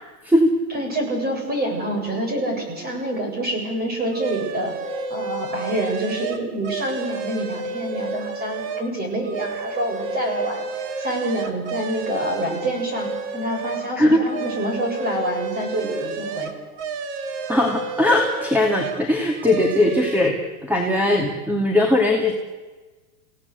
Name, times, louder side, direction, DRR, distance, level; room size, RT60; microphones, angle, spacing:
voice 1, 0.7-4.7 5.1-10.6 11.0-16.5, right 1 dB, 20° right, 2 dB, 7.8 m, -27 dB
sound 1, 4.1-8.9 9.2-13.9 14.2-19.0 19.4-20.3, right 3 dB, 45° right, 2.7 m, -31 dB
voice 2, 17.5-22.3, left 1 dB, 5° right, 1 dB, 2.4 m, -19 dB
29.5 x 17.5 x 8.3 m, 1.3 s
supercardioid pair, 140°, 47 cm